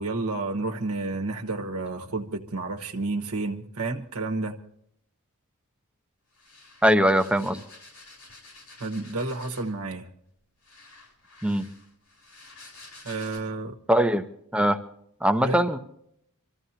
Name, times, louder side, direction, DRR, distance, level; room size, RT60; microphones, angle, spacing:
voice 1, 0.0-4.6 8.8-10.1 13.0-13.7 15.4-15.6, right 3 dB, 70° right, 1.2 m, -30 dB
sound 1, 6.3-9.8 10.6-13.4, left 2 dB, 85° left, 7.2 m, -50 dB
voice 2, 6.8-7.6 11.4-11.7 13.9-14.2 14.5-14.8 15.2-15.8, equal, 5° right, 0.8 m, -21 dB
26.0 x 14.5 x 2.8 m
head